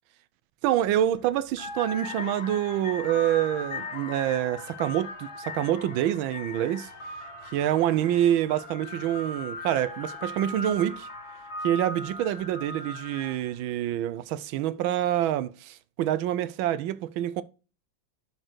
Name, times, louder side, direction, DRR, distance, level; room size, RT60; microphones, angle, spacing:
voice 1, 0.6-6.9 7.5-11.1 11.6-17.4, right 12 dB, 80° right, 1.4 m, -26 dB
sound 1, 0.9-1.1 1.5-13.6, left 2 dB, 50° left, 1.9 m, -38 dB
11.0 x 4.4 x 4.5 m
omnidirectional pair, 2.2 m